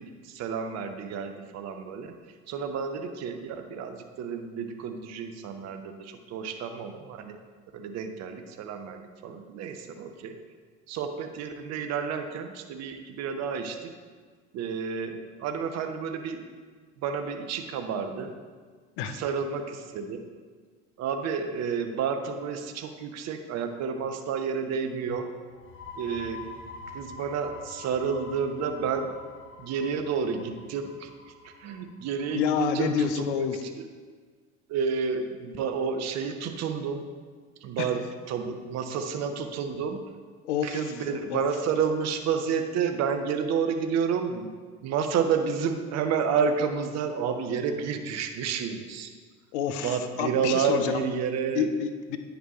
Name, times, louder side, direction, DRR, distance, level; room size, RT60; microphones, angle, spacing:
voice 1, 0.0-2.1 2.5-7.4 7.7-10.3 10.9-13.9 14.5-16.4 17.0-18.3 19.1-20.2 21.0-25.3 26.0-26.4 26.9-29.1 29.6-31.1 31.6-33.4 34.7-37.0 37.6-40.0 40.6-44.5 44.8-49.1 49.8-51.7, right 6 dB, 45° right, 7 dB, 0.8 m, -30 dB
sound 1, 25.5-33.0, left 3 dB, 35° left, 1.0 m, -46 dB
voice 2, 32.3-33.6 37.8-37.9 40.4-41.0 41.3-41.5 49.5-51.0 51.5-52.2, left 8 dB, 70° left, 9 dB, 0.7 m, -28 dB
9.7 x 5.0 x 3.0 m, 1.5 s
hypercardioid pair, 80°, 36 cm